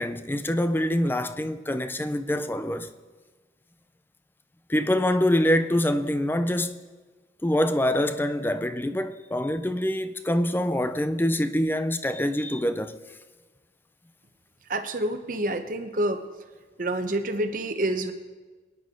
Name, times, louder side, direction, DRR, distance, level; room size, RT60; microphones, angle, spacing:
voice 1, 0.0-2.9 4.7-6.8 7.4-13.0, left 1 dB, 10° left, 0.5 m, -25 dB
voice 2, 14.7-16.2 16.8-18.1, right 1 dB, 50° right, 1.0 m, -27 dB
23.0 x 10.5 x 3.8 m
head